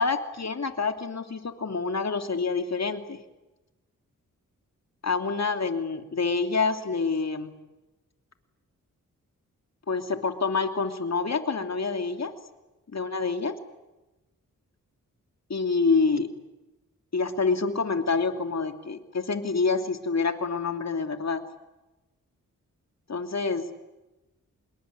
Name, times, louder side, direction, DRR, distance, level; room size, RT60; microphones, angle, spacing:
voice 1, 0.0-3.2 5.0-7.5 9.9-12.3 12.9-13.6 15.5-16.3 17.1-21.4 23.1-23.7, left 4 dB, 50° left, 7 dB, 3.0 m, -27 dB
27.0 x 21.5 x 9.7 m, 1.0 s
cardioid pair, 60°, 33 cm